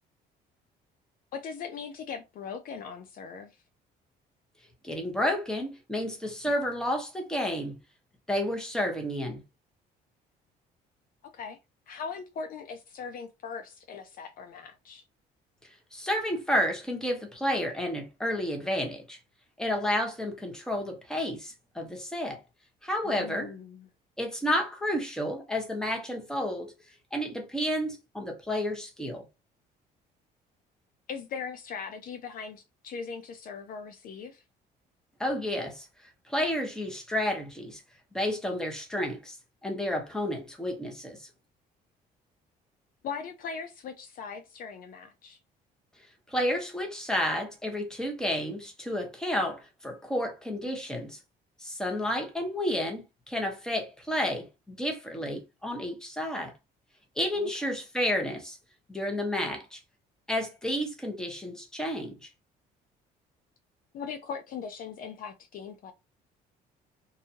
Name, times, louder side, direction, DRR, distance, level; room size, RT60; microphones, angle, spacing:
voice 1, 1.3-3.5 11.3-11.6 11.9-15.0 23.0-23.9 31.1-34.4 43.0-45.4 57.3-57.5 63.9-65.9, left 6 dB, 55° left, 0.5 m, -39 dB
voice 2, 4.8-7.8 8.3-9.4 15.9-19.2 19.6-22.4 22.8-23.5 24.2-26.7 27.1-29.3 35.2-35.9 36.3-37.8 38.1-39.4 39.6-41.3 46.3-51.2 51.6-56.5 57.2-58.6 58.9-59.8 60.3-62.2, left 1 dB, 5° left, 0.9 m, -31 dB
2.7 x 2.3 x 2.7 m
cardioid pair, 110°, 17 cm